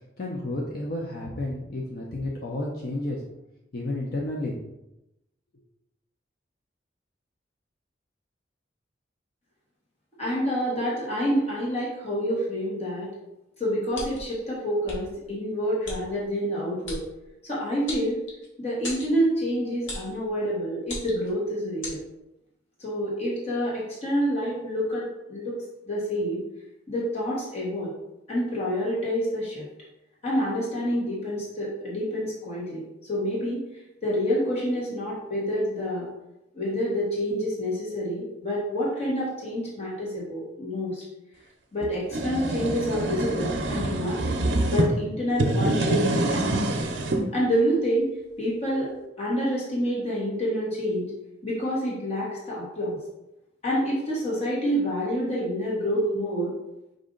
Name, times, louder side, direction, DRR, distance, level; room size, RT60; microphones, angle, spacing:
voice 1, 0.2-3.2 3.7-4.6, left 1 dB, 50° left, -2 dB, 0.6 m, -31 dB
voice 2, 10.2-13.1 13.6-17.0 17.4-18.2 18.6-22.0 22.8-25.6 25.9-26.4 26.9-27.9 28.3-29.6 30.2-33.6 34.0-36.1 36.5-41.0 41.7-44.3 44.7-46.6 47.3-48.1 48.4-48.9 49.2-51.1 51.4-53.0 53.6-56.5, equal, 35° left, -6 dB, 1.2 m, -27 dB
sound 1, 13.9-14.3 14.8-15.0 15.8-16.0 16.8-17.0 17.9-18.5 18.8-19.1 19.9-20.1 20.8-21.3 21.8-22.0, left 2 dB, 85° left, 1.4 m, -35 dB
sound 2, 41.8-44.9 45.3-47.2, right 1 dB, 70° right, 0.6 m, -26 dB
5.0 x 2.6 x 3.8 m, 0.91 s
head